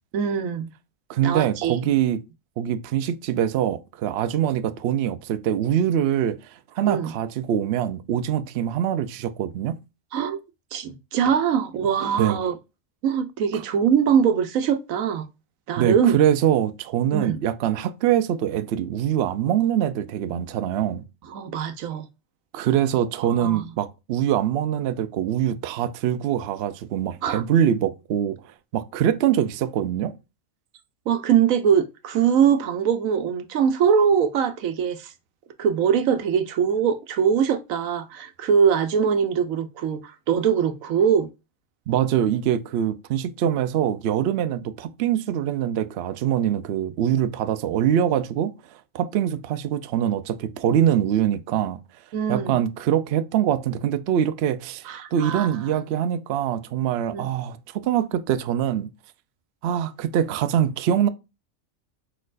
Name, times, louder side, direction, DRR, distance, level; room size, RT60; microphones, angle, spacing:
voice 1, 0.1-0.7 1.2-1.9 6.8-7.1 10.1-10.4 10.7-12.5 13.0-15.3 15.7-16.1 17.1-17.4 21.3-22.1 23.3-23.6 27.2-27.4 31.1-35.1 35.6-41.3 52.1-52.6 54.9-55.5 57.1-57.2, right 7 dB, 85° right, 1.1 m, -22 dB
voice 2, 1.1-2.2 2.6-6.4 6.7-9.8 12.2-12.4 13.5-13.6 15.8-21.0 22.5-28.4 28.7-30.2 41.9-48.5 48.9-51.8 52.3-58.9 59.6-61.1, right 10 dB, 65° right, 0.7 m, -23 dB
4.7 x 4.3 x 2.4 m
omnidirectional pair, 1.4 m